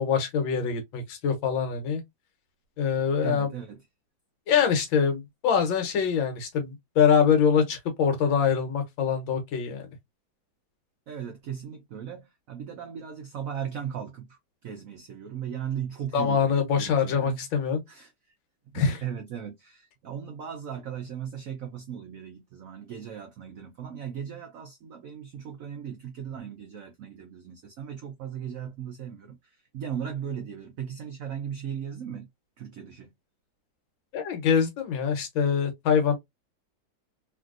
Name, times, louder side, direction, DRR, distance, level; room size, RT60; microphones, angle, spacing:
voice 1, 0.0-2.0 2.8-3.5 4.5-9.9 16.1-17.8 18.7-19.0 34.1-36.1, left 7 dB, 80° left, 1.6 m, -24 dB
voice 2, 3.2-3.8 11.1-17.5 17.9-18.3 18.7-32.3 32.6-33.1, right 8 dB, 90° right, 0.7 m, -37 dB
3.3 x 2.6 x 2.4 m
omnidirectional pair, 2.1 m